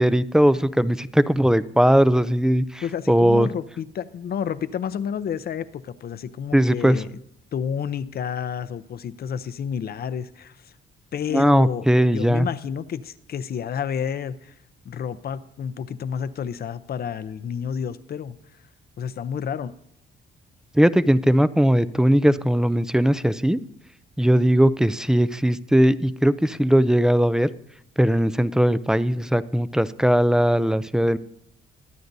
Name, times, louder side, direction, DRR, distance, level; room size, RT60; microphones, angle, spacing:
voice 1, 0.0-3.5 6.5-7.0 11.3-12.5 20.7-23.6 24.2-27.5 28.0-31.2, equal, 5° right, 16 dB, 0.4 m, -19 dB
voice 2, 2.8-7.1 7.5-10.7 11.1-11.9 12.1-14.6 14.8-18.4 19.0-19.7, left 8 dB, 50° left, 13 dB, 0.6 m, -30 dB
22.5 x 9.3 x 2.7 m, 0.74 s
cardioid pair, 90°, 20 cm